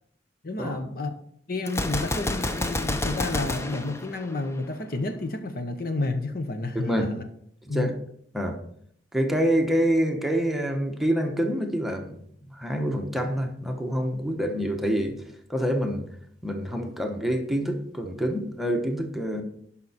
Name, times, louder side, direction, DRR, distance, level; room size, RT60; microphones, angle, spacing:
voice 1, 0.4-1.1 1.5-7.3 7.7-7.9, left 2 dB, 55° left, 7 dB, 0.9 m, -30 dB
Gunshot gunfire, 1.7-4.8, left 1 dB, 15° left, 0.6 m, -29 dB
voice 2, 6.7-7.1 7.6-7.9 8.3-8.6 9.1-12.2 12.5-15.2 15.5-16.1 16.4-19.4, equal, ahead, 3 dB, 1.0 m, -26 dB
11.0 x 5.7 x 4.2 m, 0.67 s
head